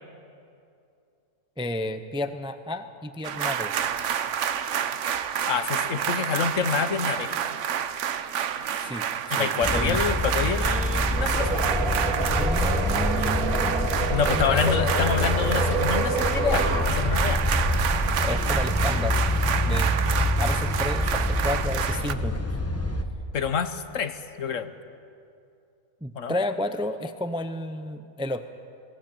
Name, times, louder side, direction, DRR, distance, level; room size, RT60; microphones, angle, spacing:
voice 1, 1.6-3.7 8.8-10.0 12.4-13.9 14.3-14.8 18.2-19.2 19.6-19.9 20.4-22.5 26.0-28.4, left 1 dB, 5° right, 9 dB, 0.5 m, -32 dB
sound 1, 3.2-22.1, right 8 dB, 65° right, 1.1 m, -29 dB
voice 2, 5.5-7.3 9.3-11.6 14.1-17.4 23.3-24.7 26.1-26.4, left 6 dB, 65° left, 11 dB, 1.3 m, -27 dB
sound 2, 9.6-23.0, left 1 dB, 10° left, 1.1 m, -26 dB
sound 3, 11.1-16.9, right 3 dB, 85° right, 2.8 m, -29 dB
20.5 x 18.0 x 9.0 m, 2.5 s
omnidirectional pair, 1.5 m